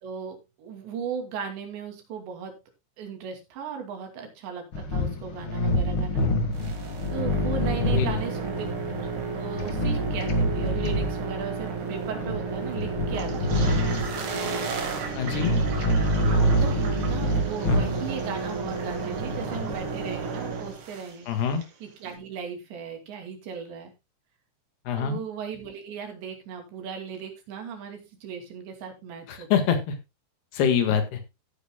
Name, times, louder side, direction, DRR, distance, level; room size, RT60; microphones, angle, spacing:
voice 1, 0.0-2.6 3.0-6.3 7.1-8.6 9.4-13.7 16.2-23.9 24.9-29.7, right 6 dB, 90° right, 4 dB, 4.9 m, -37 dB
sound 1, 4.7-19.8, equal, 45° left, 1.7 m, -27 dB
sound 2, 6.5-21.1, right 4 dB, 45° right, 1.8 m, -33 dB
Toilet flush, 13.1-21.7, right 5 dB, 65° right, 4.5 m, -40 dB
voice 2, 15.2-15.5 21.3-21.6 24.9-25.2 29.3-30.0 30.5-31.2, left 7 dB, 70° left, 8 dB, 3.7 m, -25 dB
15.5 x 9.4 x 2.2 m, 0.24 s
omnidirectional pair, 4.9 m